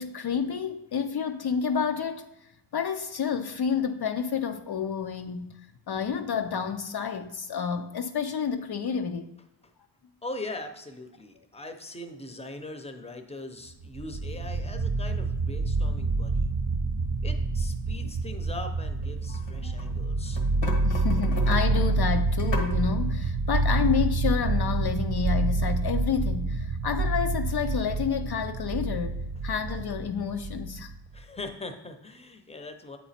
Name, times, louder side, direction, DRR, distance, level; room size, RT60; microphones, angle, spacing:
voice 1, 0.0-5.5 5.9-9.3 19.3-19.8 20.8-30.9, left 6 dB, 60° left, 0.5 m, -30 dB
voice 2, 10.2-16.5 17.2-20.4 31.1-33.0, left 2 dB, 15° left, 0.7 m, -41 dB
sound 1, 13.8-31.2, right 3 dB, 50° right, 0.6 m, -27 dB
sound 2, 19.0-19.9 20.3-22.7, left 3 dB, 85° left, 1.2 m, -36 dB
8.0 x 3.0 x 4.2 m
wide cardioid pair, 50°, 43 cm